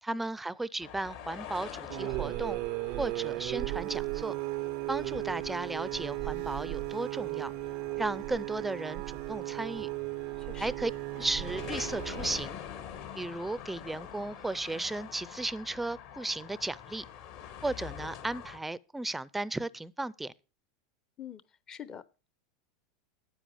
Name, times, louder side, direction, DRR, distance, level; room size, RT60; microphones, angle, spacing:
voice 1, 0.0-2.6 3.0-4.3 4.9-7.5 8.0-9.9 10.6-10.9 11.2-12.6 13.2-17.0 17.6-20.3, right 2 dB, 5° right, 0.5 m, -35 dB
sound 1, 0.8-18.6, left 9 dB, 60° left, 2.7 m, -46 dB
sound 2, 1.9-12.5, right 20 dB, 55° right, 0.4 m, -36 dB
voice 2, 10.4-10.8 21.2-21.4 21.7-22.3, left 9 dB, 35° left, 0.8 m, -45 dB
10.0 x 8.6 x 4.9 m
hypercardioid pair, 105°, 2 cm